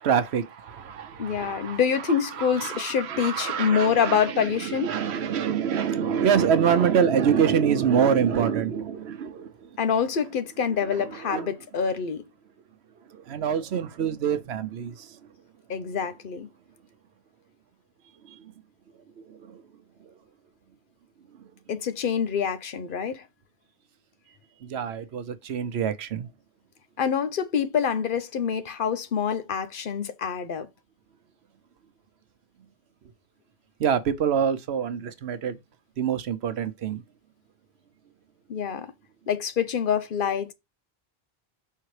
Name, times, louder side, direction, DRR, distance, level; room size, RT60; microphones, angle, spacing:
voice 1, 0.0-1.8 2.4-9.7 11.3-11.5 13.3-15.1 18.3-18.4 19.3-19.6 24.6-26.3 33.8-35.6 36.0-37.0, right 7 dB, 85° right, 1.0 m, -25 dB
voice 2, 1.2-5.0 9.8-12.3 15.7-16.5 21.7-23.2 27.0-30.7 38.5-38.9 39.3-40.5, left 7 dB, 60° left, 0.8 m, -26 dB
5.6 x 3.7 x 4.7 m
omnidirectional pair, 1.0 m